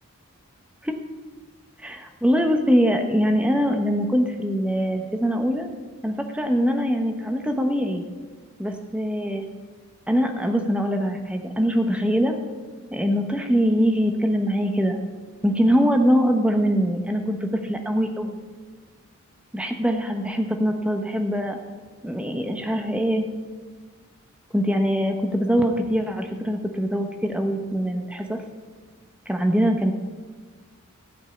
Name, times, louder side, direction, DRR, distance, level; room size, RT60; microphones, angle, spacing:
voice 1, 1.8-5.7 6.0-8.0 8.6-9.4 10.1-12.4 12.9-15.0 15.4-18.4 19.5-21.6 22.0-23.3 24.5-28.4 29.3-29.9, equal, 5° right, 4 dB, 0.9 m, -23 dB
16.0 x 5.4 x 8.3 m, 1.5 s
head